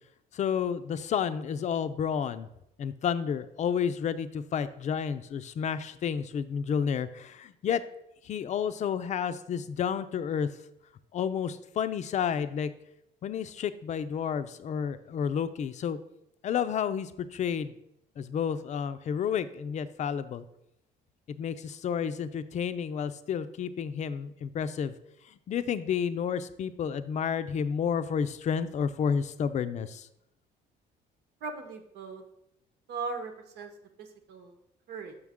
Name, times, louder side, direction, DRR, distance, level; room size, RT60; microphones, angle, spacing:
voice 1, 0.3-2.5 2.8-7.8 8.2-10.5 11.1-12.7 13.2-16.0 16.4-17.7 18.2-20.4 21.3-24.9 25.5-30.1, left 7 dB, 45° left, 12 dB, 0.5 m, -31 dB
voice 2, 31.4-32.2 32.9-33.7 34.0-34.6 34.9-35.1, right 4 dB, 75° right, 5 dB, 1.1 m, -38 dB
6.3 x 6.2 x 3.6 m, 0.81 s
cardioid pair, 110°, 17 cm